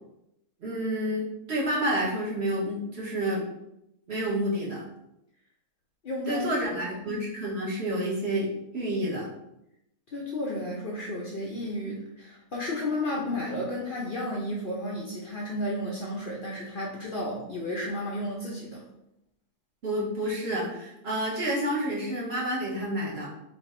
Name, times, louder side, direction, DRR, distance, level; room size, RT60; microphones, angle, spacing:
voice 1, 0.6-3.4 4.1-4.8 6.3-8.5 8.7-9.2 19.8-23.3, right 1 dB, 45° right, -6 dB, 1.3 m, -29 dB
voice 2, 6.0-6.5 10.1-18.8, left 1 dB, 55° left, -4 dB, 0.6 m, -32 dB
3.2 x 2.6 x 4.2 m, 0.84 s
omnidirectional pair, 1.6 m